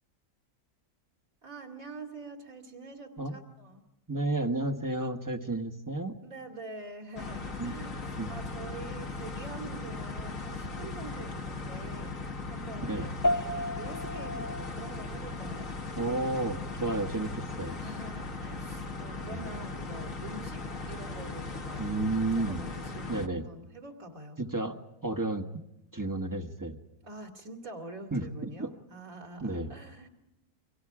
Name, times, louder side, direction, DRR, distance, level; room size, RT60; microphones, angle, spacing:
voice 1, 1.4-3.8 6.2-8.0 8.3-13.1 13.4-15.7 17.8-21.9 22.4-24.4 27.0-30.1, right 2 dB, 60° right, 3 dB, 3.0 m, -45 dB
voice 2, 4.1-6.2 7.6-7.7 8.2-8.3 12.8-13.1 15.9-17.8 19.3-19.4 21.8-22.6 23.1-23.4 24.4-24.8 25.0-25.6 25.9-26.8 28.1-28.7 29.4-29.7, right 2 dB, 15° right, 6 dB, 1.2 m, -32 dB
sound 1, 7.2-23.3, left 3 dB, 60° left, 1.6 m, -38 dB
sound 2, 13.2-22.8, left 1 dB, 15° left, 0.7 m, -38 dB
29.5 x 24.5 x 4.9 m, 0.92 s
omnidirectional pair, 1.6 m